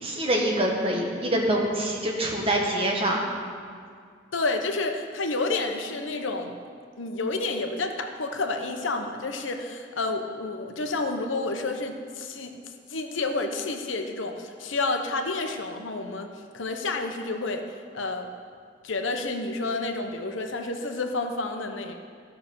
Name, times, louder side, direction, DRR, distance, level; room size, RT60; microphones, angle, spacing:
voice 1, 0.0-3.2, right 1 dB, 30° right, -1 dB, 1.6 m, -25 dB
voice 2, 4.3-6.5 7.0-12.5 12.9-17.6 17.9-18.3 18.8-21.9, left 3 dB, 90° left, 5 dB, 1.0 m, -30 dB
14.0 x 5.9 x 6.8 m, 2.2 s
head